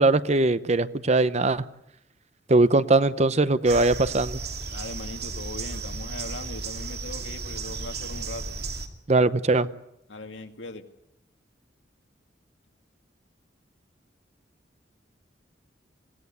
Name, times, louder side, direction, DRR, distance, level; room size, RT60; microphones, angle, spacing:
voice 1, 0.0-1.6 2.5-4.4 9.1-9.7, right 2 dB, 40° right, 14 dB, 0.8 m, -21 dB
sound 1, 3.6-8.9, right 4 dB, 60° right, 2.6 m, -34 dB
voice 2, 4.7-8.6 10.1-10.9, left 2 dB, 85° left, 6 dB, 2.2 m, -39 dB
25.5 x 17.5 x 8.3 m, 0.80 s
head